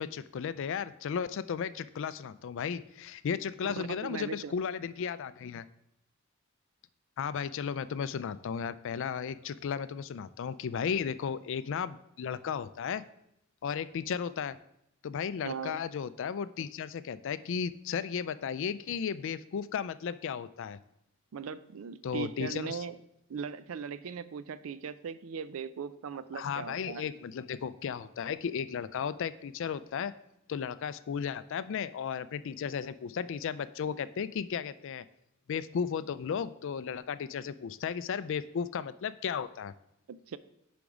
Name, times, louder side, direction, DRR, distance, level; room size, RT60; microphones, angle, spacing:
voice 1, 0.0-5.6 7.2-13.0 13.6-14.6 15.0-20.8 22.0-22.8 26.3-30.1 30.5-35.1 35.5-39.7, left 7 dB, 65° left, 15 dB, 0.4 m, -35 dB
voice 2, 3.6-4.5 15.4-15.8 21.3-23.0 23.3-27.0 40.1-40.4, right 6 dB, 80° right, 15 dB, 0.4 m, -39 dB
6.9 x 5.2 x 4.9 m, 0.79 s
head